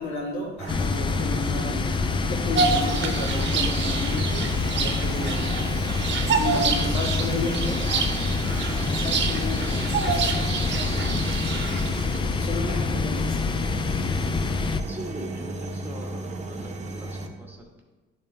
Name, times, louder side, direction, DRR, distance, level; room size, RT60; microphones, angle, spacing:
voice 1, 0.0-2.0 2.3-5.8 6.3-8.0 8.9-11.2 12.4-13.4, left 2 dB, 90° left, -3 dB, 2.1 m, -33 dB
sound 1, 0.6-17.3, right 1 dB, 35° right, 0.8 m, -34 dB
sound 2, 0.7-14.8, left 4 dB, 25° left, 0.4 m, -27 dB
Bird vocalization bird call bird song, 2.5-12.2, right 5 dB, 65° right, 0.8 m, -28 dB
voice 2, 14.9-17.8, equal, 10° right, 0 dB, 1.6 m, -41 dB
10.5 x 3.7 x 3.4 m, 1.3 s
cardioid pair, 90°, 20 cm